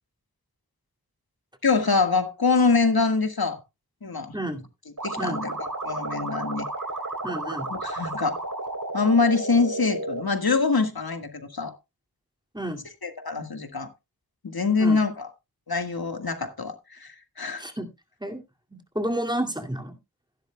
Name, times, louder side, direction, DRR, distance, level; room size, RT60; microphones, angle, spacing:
voice 1, 1.6-3.6 4.0-4.3 5.0-6.7 7.7-8.4 8.9-11.7 13.0-13.9 14.4-15.3 15.7-17.6, left 4 dB, 75° left, 1.7 m, -24 dB
voice 2, 4.3-4.6 5.2-5.5 7.2-7.7 12.5-12.9 14.8-15.0 17.6-17.9 18.2-18.4 18.7-20.0, right 1 dB, 10° right, 2.3 m, -30 dB
sound 1, 5.0-10.2, right 2 dB, 55° right, 3.3 m, -32 dB
15.0 x 11.5 x 2.2 m
wide cardioid pair, 45°, 37 cm